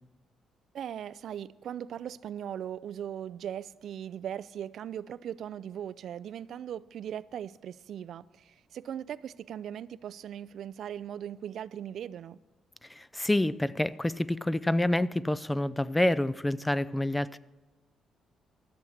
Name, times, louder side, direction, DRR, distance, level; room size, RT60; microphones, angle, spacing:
voice 1, 0.7-12.4, right 9 dB, 70° right, 0.3 m, -39 dB
voice 2, 12.8-17.4, left 1 dB, 10° left, 0.4 m, -28 dB
13.5 x 7.1 x 6.5 m
cardioid pair, 90°, 0 cm